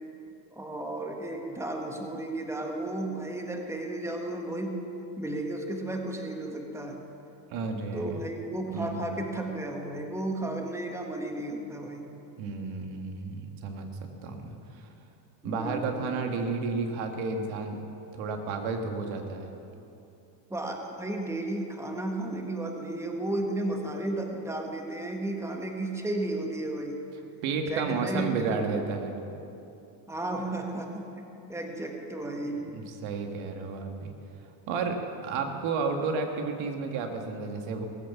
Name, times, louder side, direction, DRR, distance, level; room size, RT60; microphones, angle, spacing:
voice 1, 0.5-4.8 5.2-7.0 7.9-12.1 15.4-16.1 20.5-27.0 27.7-28.8 30.1-31.1 31.5-32.6, right 1 dB, 5° right, 2 dB, 1.6 m, -33 dB
voice 2, 7.5-8.2 8.7-9.0 12.4-13.9 14.2-14.9 15.4-17.8 18.1-19.5 27.4-29.2 32.7-34.1 34.7-35.0 35.2-37.9, right 4 dB, 75° right, 4 dB, 1.8 m, -32 dB
18.0 x 8.3 x 7.1 m, 2.8 s
cardioid pair, 110°, 49 cm